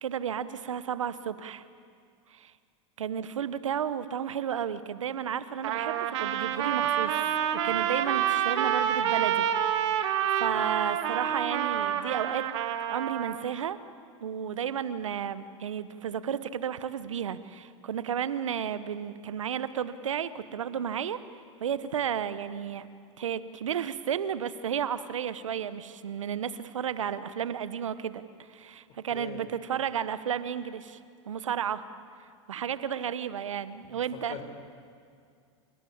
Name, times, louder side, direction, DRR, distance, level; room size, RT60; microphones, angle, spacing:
voice 1, 0.0-1.6 2.3-2.5 3.0-7.1 7.5-9.5 9.7-12.5 12.9-13.8 14.2-21.2 21.6-22.9 23.2-28.2 28.5-31.0 31.3-31.8 32.2-34.4, right 8 dB, 85° right, 14 dB, 1.0 m, -33 dB
Trumpet, 5.6-13.4, right 10 dB, 65° right, 2.0 m, -28 dB
voice 2, 29.1-29.4 33.8-34.0 34.3-34.5, left 7 dB, 45° left, 6 dB, 4.9 m, -41 dB
29.0 x 18.0 x 8.6 m, 2.2 s
hypercardioid pair, 95°, 16 cm